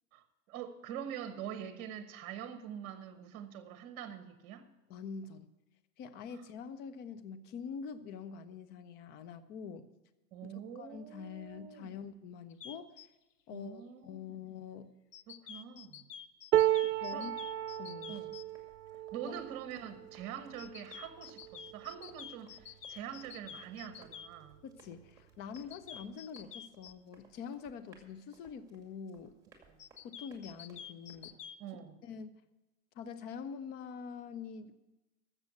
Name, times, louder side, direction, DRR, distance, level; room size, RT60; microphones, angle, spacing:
voice 1, 0.1-4.7 10.3-11.9 13.5-14.4 15.3-16.1 17.1-17.3 18.1-18.4 19.1-24.6 29.7-29.8 31.6-32.1, right 9 dB, 30° right, 1.3 m, -45 dB
voice 2, 4.9-5.5 6.0-9.9 10.4-12.9 13.5-14.9 16.8-17.3 17.8-18.2 19.2-19.3 24.6-29.4 30.0-31.4 32.0-32.4 33.0-34.8, left 6 dB, 20° left, 0.6 m, -45 dB
sound 1, 12.5-13.1 15.1-18.4 20.6-24.3 25.5-26.9 29.8-31.6, left 9 dB, 90° left, 0.7 m, -48 dB
sound 2, 16.5-22.7 23.3-23.5 23.7-24.5 25.5-25.6, right 13 dB, 80° right, 0.5 m, -34 dB
Run, 18.0-31.3, right 3 dB, 5° right, 2.4 m, -64 dB
13.0 x 7.4 x 8.2 m
hypercardioid pair, 115°, 46 cm